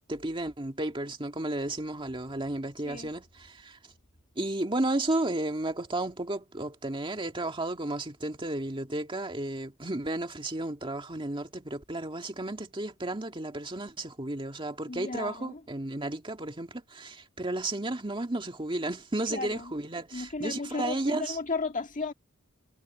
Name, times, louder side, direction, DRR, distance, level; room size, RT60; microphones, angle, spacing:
voice 1, 0.1-3.8 4.4-21.4, right 2 dB, 25° right, 2.0 m, -33 dB
voice 2, 14.9-15.6 19.3-19.7 20.1-22.1, left 3 dB, 35° left, 2.0 m, -34 dB
head